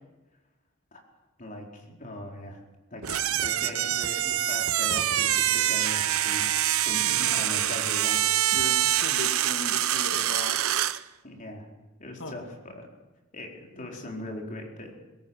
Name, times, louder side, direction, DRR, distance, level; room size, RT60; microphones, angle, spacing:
voice 1, 1.4-2.6 2.9-8.2 11.2-11.7 12.0-12.9 13.3-14.9, left 1 dB, 40° left, 0 dB, 4.4 m, -40 dB
sound 1, 3.0-11.0, right 12 dB, 85° right, 0.8 m, -25 dB
voice 2, 7.1-7.5 8.5-10.6 12.2-12.3, left 2 dB, 65° left, 5 dB, 2.3 m, -38 dB
21.0 x 18.0 x 7.4 m, 1.1 s
head